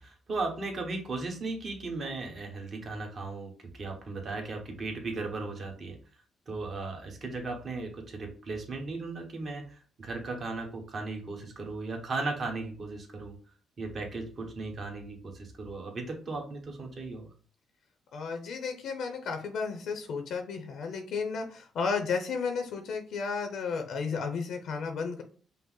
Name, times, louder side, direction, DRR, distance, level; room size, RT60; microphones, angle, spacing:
voice 1, 0.0-6.0 6.5-13.3 13.8-17.3, right 3 dB, 45° right, 2 dB, 1.3 m, -36 dB
voice 2, 18.1-25.2, left 5 dB, 75° left, 5 dB, 0.7 m, -33 dB
5.4 x 2.1 x 3.9 m, 0.41 s
cardioid pair, 90°, 0 cm